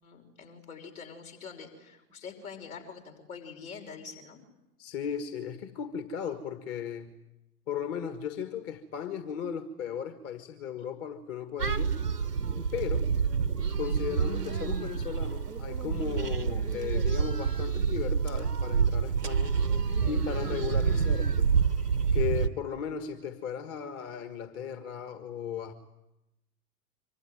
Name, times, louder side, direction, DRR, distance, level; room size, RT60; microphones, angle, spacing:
voice 1, 0.0-4.4 20.9-21.1, left 5 dB, 65° left, 2 dB, 6.0 m, -45 dB
voice 2, 4.8-7.1 7.7-12.0 12.7-13.1 13.8-19.6 20.1-21.6 22.1-25.7, left 8 dB, 30° left, 9 dB, 1.7 m, -36 dB
sound 1, 11.6-22.5, right 6 dB, 90° right, 1.0 m, -28 dB
25.5 x 24.5 x 9.4 m, 0.93 s
figure-of-eight pair, 95°, 46 cm